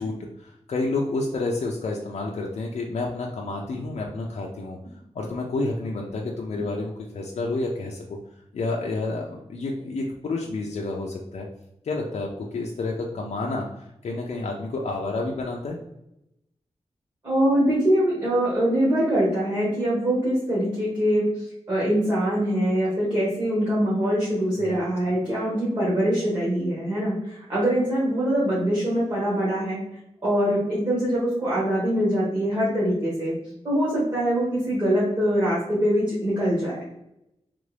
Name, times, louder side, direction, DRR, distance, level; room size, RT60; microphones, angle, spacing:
voice 1, 0.0-4.8 5.1-8.2 8.5-11.5 11.8-15.8 24.5-25.2, left 2 dB, 65° left, -1 dB, 0.5 m, -30 dB
voice 2, 17.2-21.3 21.7-29.8 30.2-33.4 33.6-36.8, equal, 30° right, -8 dB, 1.4 m, -23 dB
3.4 x 2.5 x 3.2 m, 0.84 s
wide cardioid pair, 145°, 12 cm